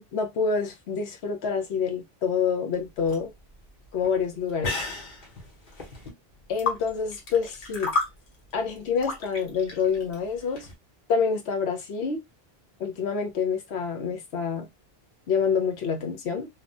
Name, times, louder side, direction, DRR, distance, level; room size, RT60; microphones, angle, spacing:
voice 1, 0.1-3.3 3.9-4.8 6.5-7.9 8.5-10.7 11.1-12.2 12.8-14.7 15.3-16.5, left 5 dB, 85° left, 1.0 m, -27 dB
sound 1, 2.8-10.7, left 3 dB, 55° left, 1.0 m, -34 dB
2.9 x 2.1 x 2.5 m
omnidirectional pair, 1.1 m